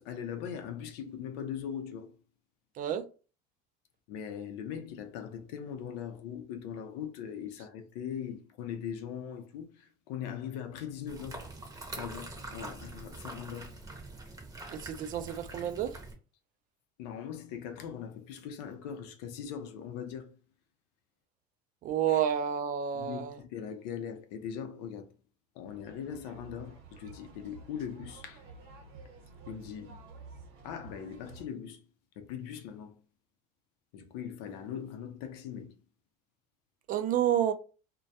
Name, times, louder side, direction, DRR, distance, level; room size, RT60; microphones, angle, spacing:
voice 1, 0.0-2.1 4.1-11.5 12.0-13.7 17.0-20.3 22.1-22.2 22.9-25.1 25.6-28.4 29.5-30.0 30.6-31.8 32.2-33.0 33.9-35.8, left 8 dB, 75° left, 0.5 m, -40 dB
sound 1, 11.1-16.1, right 2 dB, 15° right, 0.7 m, -44 dB
voice 2, 14.7-15.9 21.8-23.4 36.9-37.5, right 10 dB, 40° right, 0.4 m, -29 dB
sound 2, 25.7-31.5, right 3 dB, 70° right, 0.9 m, -51 dB
2.2 x 2.2 x 2.6 m
supercardioid pair, 100°, 21 cm